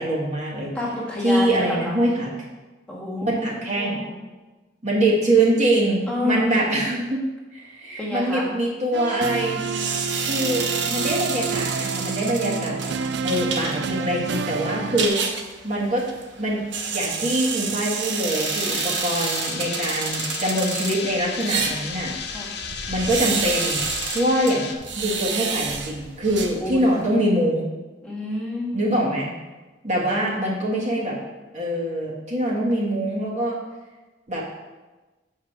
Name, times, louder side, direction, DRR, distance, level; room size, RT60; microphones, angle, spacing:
voice 1, 0.0-0.7 1.2-2.3 3.4-4.0 4.8-7.2 7.5-9.6 10.2-12.9 13.2-15.2 15.6-16.0 16.4-16.6 16.9-22.1 22.9-23.8 24.1-27.6 28.7-29.3 29.8-31.2 31.5-33.6 34.3-34.4, right 1 dB, 40° right, -4 dB, 1.7 m, -24 dB
voice 2, 0.7-2.0 2.9-4.2 6.1-6.5 8.0-8.5 12.2-12.7 18.7-19.0 22.3-22.5 26.6-26.9 28.0-29.1 30.1-30.6, left 1 dB, 5° left, -5 dB, 1.8 m, -30 dB
sound 1, 8.9-15.1, right 5 dB, 65° right, 0.4 m, -29 dB
sound 2, 9.6-27.1, right 5 dB, 90° right, 0.9 m, -29 dB
sound 3, 18.3-24.7, left 6 dB, 65° left, 0.8 m, -34 dB
7.2 x 4.9 x 6.1 m, 1.2 s
head